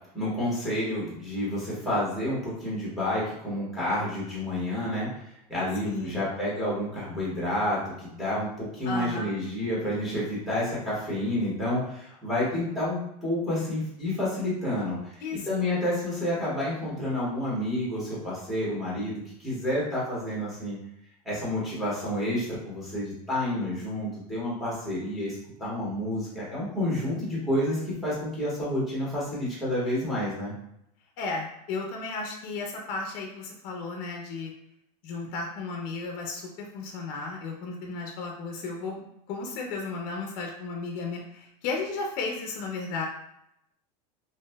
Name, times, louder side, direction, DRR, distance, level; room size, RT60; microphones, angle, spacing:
voice 1, 0.1-5.1 5.5-20.8 21.2-30.5, left 1 dB, ahead, -7 dB, 1.3 m, -29 dB
voice 2, 5.8-6.2 8.9-9.4 15.2-15.5 31.2-34.5 35.0-43.1, left 4 dB, 45° left, 1 dB, 0.6 m, -34 dB
2.9 x 2.7 x 2.2 m, 0.78 s
supercardioid pair, 145°, 21 cm